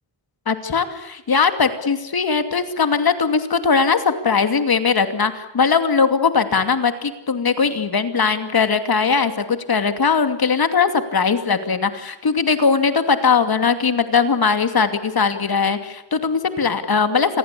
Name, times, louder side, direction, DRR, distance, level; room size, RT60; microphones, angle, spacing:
voice 1, 0.5-17.4, left 5 dB, 50° left, 9 dB, 2.7 m, -19 dB
29.5 x 22.0 x 8.5 m, 0.87 s
wide cardioid pair, 120°, 45 cm